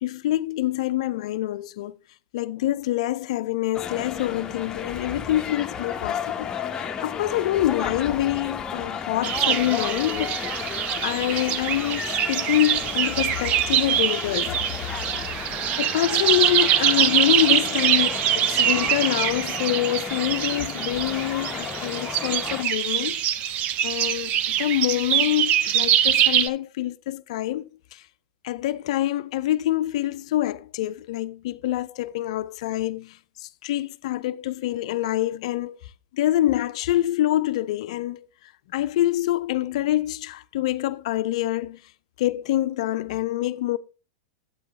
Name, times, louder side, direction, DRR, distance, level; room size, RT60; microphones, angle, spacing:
voice 1, 0.0-1.9 2.3-10.6 11.0-14.6 15.1-15.2 15.8-23.2 23.8-28.0 28.4-35.8 36.1-38.3 38.7-41.8 42.2-43.8, left 14 dB, 60° left, 0.5 m, -26 dB
sound 1, 3.7-22.6, left 7 dB, 20° left, 0.8 m, -33 dB
sound 2, 9.2-26.5, right 10 dB, 40° right, 0.5 m, -24 dB
8.5 x 8.3 x 3.4 m
hypercardioid pair, 105°, 4 cm